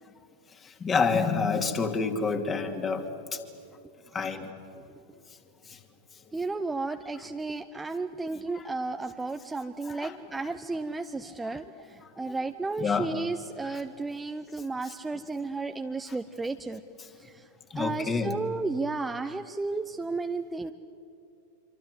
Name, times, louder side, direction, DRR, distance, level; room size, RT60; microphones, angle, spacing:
voice 1, 0.8-3.1 4.1-4.5 10.0-10.1 12.8-13.1 17.7-18.3, left 5 dB, 20° left, 6 dB, 2.6 m, -27 dB
voice 2, 6.3-16.8 17.2-17.5 17.7-20.7, right 3 dB, 10° right, 7 dB, 0.8 m, -33 dB
26.5 x 25.5 x 8.2 m, 2.7 s
figure-of-eight pair, 90°, 0 cm